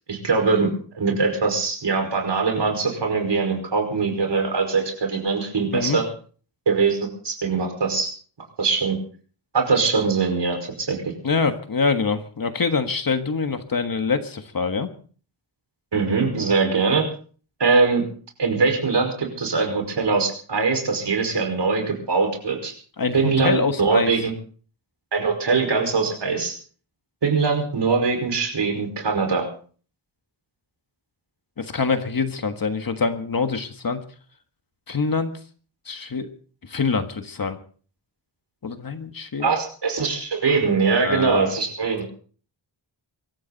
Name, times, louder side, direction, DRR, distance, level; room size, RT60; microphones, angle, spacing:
voice 1, 0.1-6.1 6.6-7.0 7.2-8.1 8.6-9.0 9.5-11.0 15.9-17.1 17.6-18.0 18.4-22.7 23.1-24.3 25.1-26.5 27.2-29.5 39.4-42.1, right 4 dB, 60° right, 3 dB, 5.3 m, -22 dB
voice 2, 11.2-14.9 23.0-24.1 31.6-34.0 34.9-35.3 35.9-36.3 36.7-37.6 38.6-39.6 40.9-41.5, left 4 dB, 45° left, 7 dB, 1.6 m, -25 dB
24.0 x 13.5 x 4.1 m, 0.43 s
wide cardioid pair, 165°, 47 cm